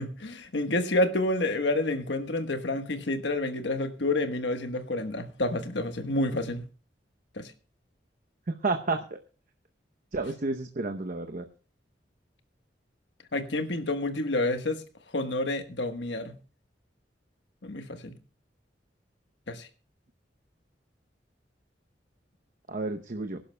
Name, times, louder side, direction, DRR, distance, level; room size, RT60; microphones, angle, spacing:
voice 1, 0.0-6.6 7.4-7.5 13.3-14.8 15.1-16.4 17.6-18.1 19.5-19.7, left 2 dB, 80° left, 1.3 m, -29 dB
voice 2, 8.6-9.0 10.1-11.4 22.7-23.4, right 3 dB, 50° right, 0.8 m, -30 dB
24.0 x 11.5 x 2.2 m
head